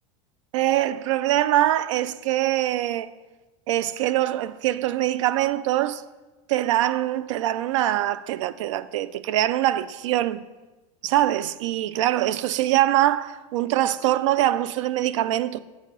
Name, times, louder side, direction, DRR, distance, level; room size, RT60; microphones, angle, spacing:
voice 1, 0.5-3.1 3.7-6.0 6.5-10.4 11.0-15.6, right 14 dB, 85° right, 0.4 m, -23 dB
8.0 x 4.8 x 6.2 m
supercardioid pair, 115°, 15 cm